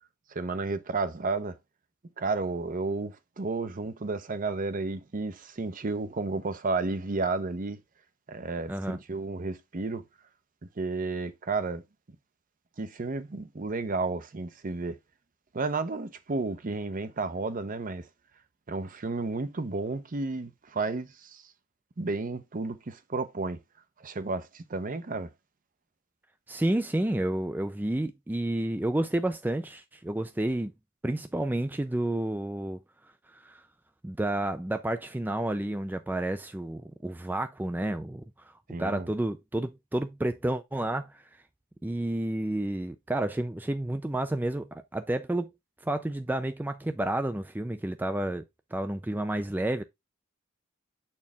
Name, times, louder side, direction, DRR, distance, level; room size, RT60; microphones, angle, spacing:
voice 1, 0.3-1.6 2.2-7.8 8.3-10.0 10.8-11.8 12.8-15.0 15.5-18.1 18.7-21.4 22.0-23.6 24.0-25.3 38.7-39.1, right 3 dB, 40° right, 0.7 m, -32 dB
voice 2, 26.5-30.7 31.0-32.8 33.3-33.6 34.0-38.5 38.8-41.2 41.8-45.5 45.8-48.4 48.7-49.8, right 1 dB, 10° right, 0.4 m, -30 dB
7.2 x 4.4 x 3.4 m
head